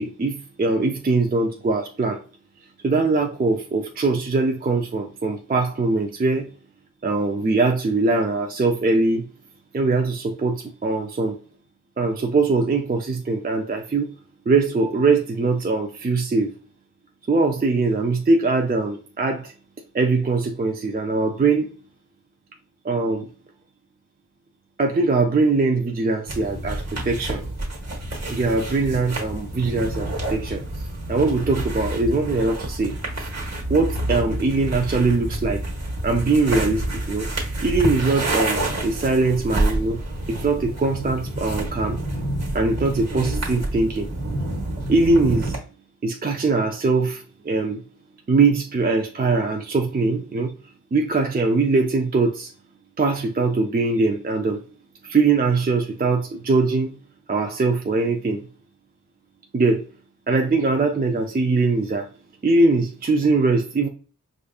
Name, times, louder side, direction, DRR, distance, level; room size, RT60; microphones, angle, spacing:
voice 1, 0.0-2.2 2.8-6.5 7.0-9.2 9.7-11.4 12.0-14.1 14.5-16.5 17.3-19.5 19.9-21.7 22.8-23.3 24.8-27.4 28.3-33.3 33.7-35.6 36.0-37.3 37.6-40.0 40.3-42.0 42.5-44.1 44.9-45.6 46.0-47.8 48.3-50.5 50.9-52.5 53.0-54.6 55.0-56.9 57.3-58.5 59.5-59.9 60.3-62.1 62.4-63.9, right 3 dB, 25° right, 0.4 m, -22 dB
sound 1, 26.3-45.6, right 1 dB, 50° right, 1.3 m, -28 dB
5.0 x 2.5 x 2.3 m
wide cardioid pair, 55°, 34 cm